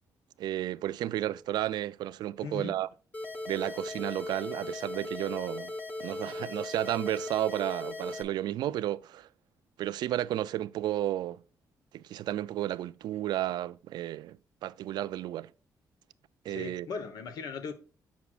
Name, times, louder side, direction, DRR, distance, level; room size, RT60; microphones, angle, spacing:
voice 1, 0.4-2.9 3.5-5.7 6.0-9.3 9.8-11.4 11.9-14.4 14.6-15.5 16.4-16.9, right 13 dB, 85° right, 0.3 m, -32 dB
voice 2, 2.4-2.8 16.5-17.7, left 5 dB, 70° left, 1.1 m, -38 dB
sound 1, 3.1-8.2, left 2 dB, 20° left, 1.0 m, -38 dB
8.1 x 6.0 x 2.4 m
wide cardioid pair, 180°, 7 cm